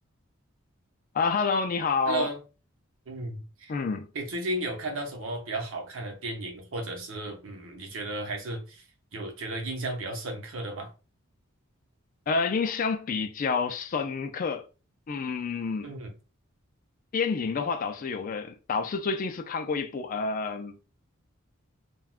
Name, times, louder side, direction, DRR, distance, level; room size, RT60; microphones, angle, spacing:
voice 1, 1.1-2.3 3.7-4.1 12.3-14.6 15.1-15.9 17.1-20.8, left 4 dB, 40° left, 0.3 m, -28 dB
voice 2, 2.1-2.4 3.1-3.7 4.1-8.8 9.1-10.9 15.8-16.1, right 2 dB, 70° right, 0.8 m, -34 dB
3.4 x 2.2 x 2.3 m
head